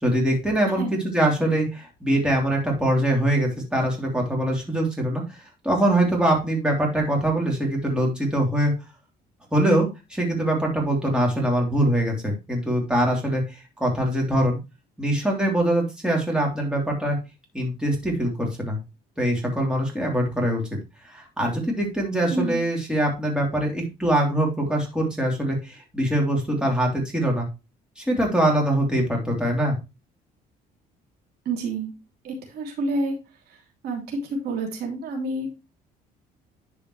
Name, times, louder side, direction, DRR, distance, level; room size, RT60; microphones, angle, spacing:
voice 1, 0.0-8.7 9.5-14.6 15.0-17.2 17.5-18.8 19.2-20.6 21.1-27.5 28.0-29.7, right 1 dB, 5° right, -1 dB, 3.2 m, -23 dB
voice 2, 22.3-22.6 31.4-31.9 32.2-33.2 33.8-35.5, right 2 dB, 70° right, 1 dB, 3.0 m, -28 dB
11.0 x 5.0 x 3.2 m, 0.27 s
cardioid pair, 110°, 17 cm